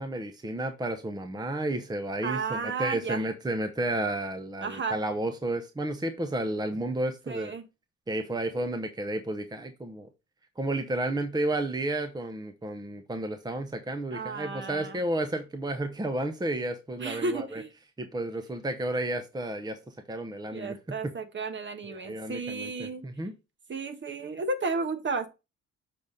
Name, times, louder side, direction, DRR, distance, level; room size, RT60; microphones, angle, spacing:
voice 1, 0.0-7.5 8.1-10.1 10.6-17.6 18.0-21.1 21.9-23.3, right 1 dB, 15° right, 0.8 m, -32 dB
voice 2, 2.2-3.2 4.6-5.0 7.3-7.6 14.1-15.0 17.0-17.7 20.5-23.1 23.7-25.3, right 4 dB, 40° right, 1.2 m, -33 dB
6.7 x 4.1 x 3.7 m
cardioid pair, 90°, 30 cm